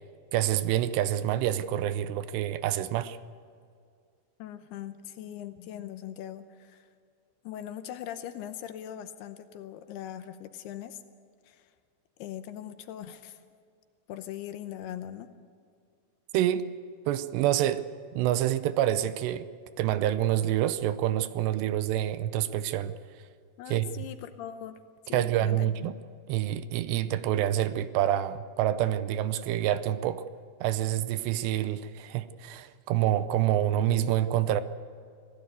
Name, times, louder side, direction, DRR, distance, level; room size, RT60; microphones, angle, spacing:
voice 1, 0.3-3.2 16.3-16.7 17.1-17.8 18.1-19.5 19.8-22.9 23.7-23.9 25.1-25.9 26.3-30.3 30.6-34.6, right 12 dB, 80° right, 13 dB, 2.8 m, -27 dB
voice 2, 4.4-6.9 7.4-11.0 11.5-11.7 12.2-13.4 14.1-15.3 23.6-24.8 25.1-25.9, left 10 dB, 75° left, 9 dB, 2.6 m, -40 dB
26.5 x 17.0 x 8.2 m, 2.2 s
omnidirectional pair, 5.1 m